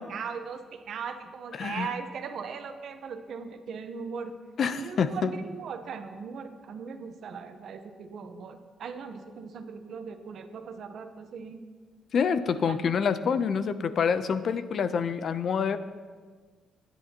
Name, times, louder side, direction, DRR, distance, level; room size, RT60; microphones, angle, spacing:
voice 1, 0.0-4.4 4.7-11.6 12.5-12.8, right 6 dB, 60° right, 7 dB, 0.9 m, -39 dB
voice 2, 4.6-5.3 12.1-15.8, left 6 dB, 50° left, 12 dB, 0.6 m, -27 dB
21.0 x 9.8 x 2.9 m, 1.5 s
cardioid pair, 125°, 0 cm